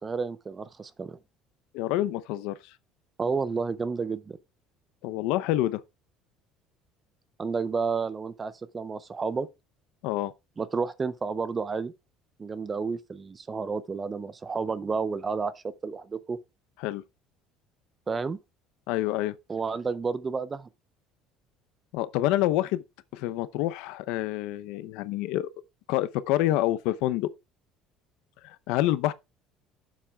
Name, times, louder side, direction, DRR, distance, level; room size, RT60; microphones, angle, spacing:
voice 1, 0.0-1.2 3.2-4.4 7.4-9.5 10.6-11.9 12.4-16.4 18.1-18.4 19.5-20.7, right 5 dB, 15° right, 0.4 m, -31 dB
voice 2, 1.7-2.7 5.0-5.8 10.0-10.3 16.8-17.0 18.9-19.4 21.9-22.8 23.1-25.5 25.9-27.3 28.4-29.1, left 14 dB, 70° left, 0.6 m, -27 dB
15.0 x 7.3 x 2.3 m
cardioid pair, 175°, 0 cm